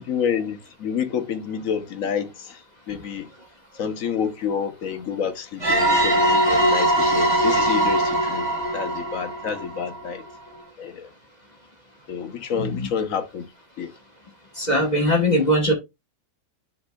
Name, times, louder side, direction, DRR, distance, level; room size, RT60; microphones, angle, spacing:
voice 1, 0.0-3.3 3.7-10.2 10.8-11.1 12.1-13.5 13.8-13.9, left 7 dB, 55° left, 1.1 m, -29 dB
sound 1, 5.6-10.2, right 1 dB, 15° right, 3.7 m, -21 dB
voice 2, 12.6-12.9 14.5-15.7, equal, 25° left, 1.3 m, -20 dB
10.5 x 4.3 x 2.2 m
omnidirectional pair, 1.9 m